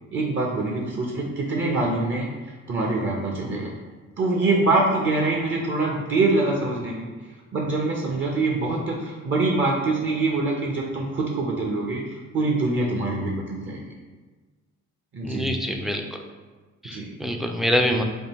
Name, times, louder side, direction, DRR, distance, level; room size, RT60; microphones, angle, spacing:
voice 1, 0.1-3.7 4.2-7.1 7.5-13.8 15.1-15.5 16.8-17.1, right 2 dB, 40° right, -1 dB, 0.6 m, -24 dB
voice 2, 15.2-16.0 16.8-18.0, equal, ahead, 2 dB, 0.3 m, -25 dB
3.6 x 2.2 x 4.1 m, 1.4 s
cardioid pair, 90°, 30 cm